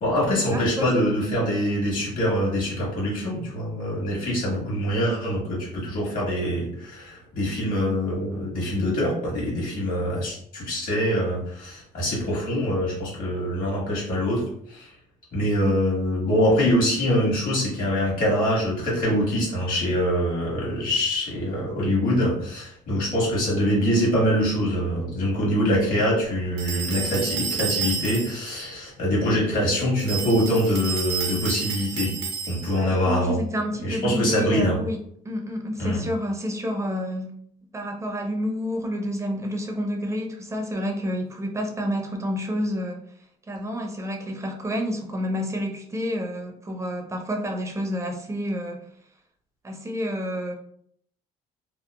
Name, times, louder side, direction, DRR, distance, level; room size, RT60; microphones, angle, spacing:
voice 1, 0.0-14.4 14.7-14.9 15.3-32.1 32.5-33.4 33.8-34.8 35.8-36.0, equal, 55° left, -4 dB, 1.3 m, -24 dB
voice 2, 0.5-0.9 32.8-35.0 35.2-37.4 37.7-43.0 43.5-48.8 49.6-50.5, equal, 15° right, 3 dB, 0.4 m, -29 dB
sound 1, 26.6-28.5 30.0-32.9, right 6 dB, 85° right, 0.7 m, -30 dB
2.8 x 2.0 x 2.2 m, 0.66 s
cardioid pair, 110°, 17 cm